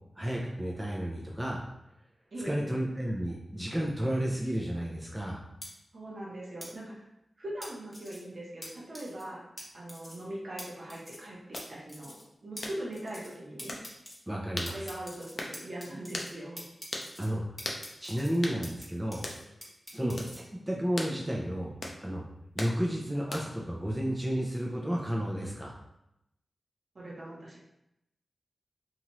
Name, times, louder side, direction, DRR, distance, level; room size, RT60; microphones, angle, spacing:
voice 1, 0.2-1.6 2.4-5.4 14.3-14.8 17.2-17.4 18.0-19.2 19.9-20.1 20.7-21.7 22.0-22.2 22.5-25.8, equal, 15° right, -2 dB, 0.4 m, -32 dB
voice 2, 2.3-2.8 5.9-7.0 7.4-9.4 9.7-13.8 14.6-16.6 20.0-20.2 26.9-27.6, right 1 dB, 60° right, -4 dB, 0.9 m, -41 dB
sound 1, 5.6-5.7 6.6-6.7 7.6-8.2 8.6-8.7 8.9-9.2 9.6-9.7 9.9-10.2 10.6-10.7 10.9-11.3 11.6-11.7 11.9-12.2 12.6-12.7 12.9-13.3 13.6-14.2 14.7-16.3 16.6-17.3 17.6-18.9 19.1-20.4, left 1 dB, 10° left, 0.9 m, -45 dB
sound 2, 11.5-11.7 12.6-12.8 13.7-13.9 14.6-14.8 15.4-15.6 16.1-16.3 16.9-17.1 17.6-17.8 18.4-18.6 19.2-19.4 20.2-20.3 21.0-21.2 21.8-22.0 22.6-22.8 23.3-23.6, left 2 dB, 60° left, 0.4 m, -37 dB
2.9 x 2.4 x 3.0 m, 0.85 s
wide cardioid pair, 65°, 0 cm